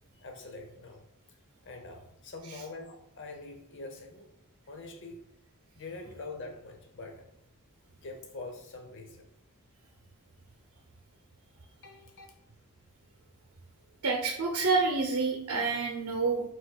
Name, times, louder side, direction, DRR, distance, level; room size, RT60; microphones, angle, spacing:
voice 1, 0.2-1.0 1.7-4.3 4.7-5.2 5.8-7.3 8.0-9.3 11.8-12.3, left 3 dB, 60° left, 4 dB, 0.8 m, -44 dB
voice 2, 14.0-16.4, right 4 dB, 80° right, 0 dB, 0.6 m, -28 dB
4.9 x 4.2 x 2.3 m, 0.77 s
head